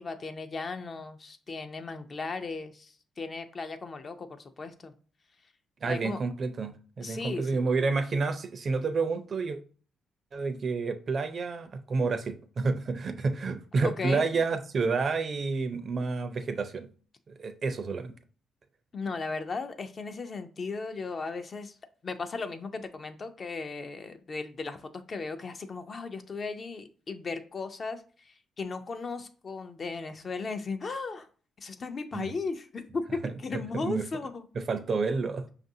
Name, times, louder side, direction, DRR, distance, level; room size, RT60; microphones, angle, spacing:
voice 1, 0.0-4.9 5.8-6.2 7.0-7.6 13.8-14.4 18.9-21.7 22.0-24.8 25.1-31.3 31.6-34.4, left 4 dB, 40° left, 0.4 m, -36 dB
voice 2, 5.8-9.6 10.3-16.9 17.3-18.1 32.1-32.3 33.5-34.0 34.6-35.5, right 4 dB, 45° right, 0.4 m, -29 dB
5.3 x 2.5 x 2.6 m
cardioid pair, 90°, 0 cm